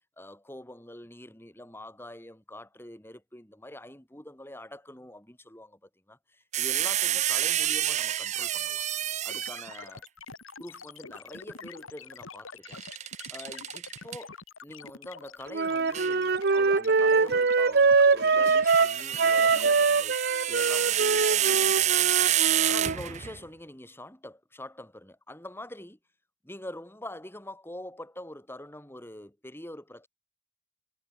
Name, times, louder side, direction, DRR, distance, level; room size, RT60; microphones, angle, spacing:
voice 1, 0.2-8.8 9.2-10.0 10.6-12.8 13.3-14.4 14.6-21.8 22.6-26.0 26.4-30.1, left 1 dB, 10° left, 3.7 m, -45 dB
sound 1, 6.5-9.8 12.7-14.2 15.9-16.2 18.2-23.4, right 12 dB, 35° right, 0.4 m, -28 dB
sound 2, 9.3-19.7, left 4 dB, 80° left, 3.7 m, -46 dB
Wind instrument woodwind instrument, 15.5-23.0, right 4 dB, 50° right, 0.8 m, -23 dB
head